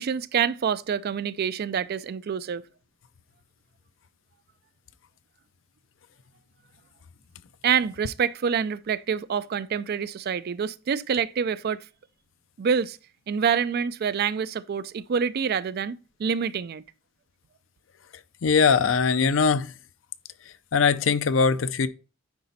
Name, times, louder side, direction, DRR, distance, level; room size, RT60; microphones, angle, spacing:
voice 1, 0.0-2.6 7.6-11.8 12.6-13.0 13.3-16.8, right 7 dB, 55° right, 0.4 m, -26 dB
voice 2, 18.4-19.7 20.7-21.9, left 5 dB, 80° left, 0.5 m, -21 dB
9.7 x 4.2 x 4.0 m
head